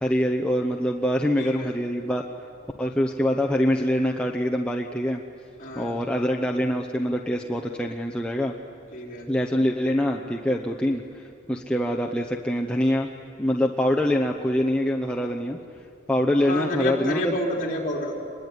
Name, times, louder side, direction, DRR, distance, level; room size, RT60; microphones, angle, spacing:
voice 1, 0.0-2.2 2.8-5.2 5.8-8.6 9.3-11.2 11.5-13.1 13.4-15.6 16.1-17.3, equal, 5° left, 0 dB, 0.9 m, -24 dB
voice 2, 1.4-1.7 5.6-6.0 8.9-9.3 16.4-18.2, left 1 dB, 40° left, -1 dB, 4.3 m, -29 dB
25.0 x 21.5 x 9.7 m, 2.5 s
head